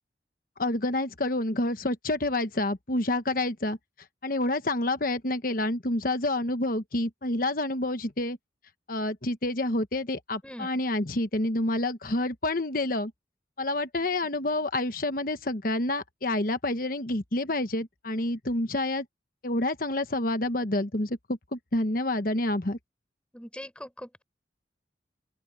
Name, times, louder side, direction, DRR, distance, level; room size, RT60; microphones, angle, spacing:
voice 1, 0.6-3.8 4.2-8.4 8.9-13.1 13.6-19.0 19.4-22.8, left 2 dB, 50° left, 1.2 m, -28 dB
voice 2, 23.3-24.2, equal, 5° left, 5.4 m, -41 dB
open air
head